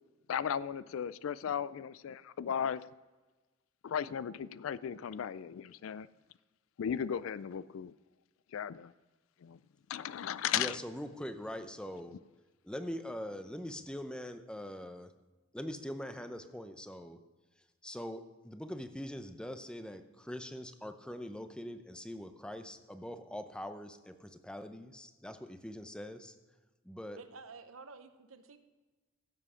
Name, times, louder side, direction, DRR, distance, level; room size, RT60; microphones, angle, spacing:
voice 1, 0.3-2.8 3.8-6.1 6.8-7.9 8.5-8.9 9.4-9.6 9.9-10.8, left 8 dB, 75° left, 18 dB, 0.3 m, -36 dB
voice 2, 10.5-12.1 12.6-15.1 15.5-17.2 17.8-26.3 26.8-27.2, equal, 5° left, 9 dB, 0.6 m, -43 dB
voice 3, 27.2-28.6, right 4 dB, 90° right, 9 dB, 0.9 m, -51 dB
15.5 x 7.5 x 5.0 m, 1.2 s
head